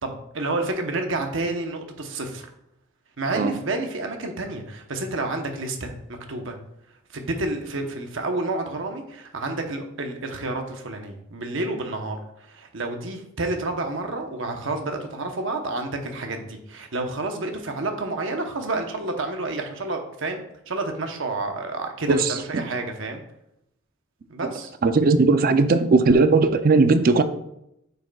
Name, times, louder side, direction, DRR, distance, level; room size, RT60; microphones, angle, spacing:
voice 1, 0.0-2.5 3.2-6.6 7.1-23.2 24.3-24.7, right 2 dB, 65° right, 0.9 m, -29 dB
voice 2, 22.1-22.6 24.8-27.2, right 3 dB, 45° right, 0.4 m, -18 dB
9.1 x 5.1 x 2.3 m
head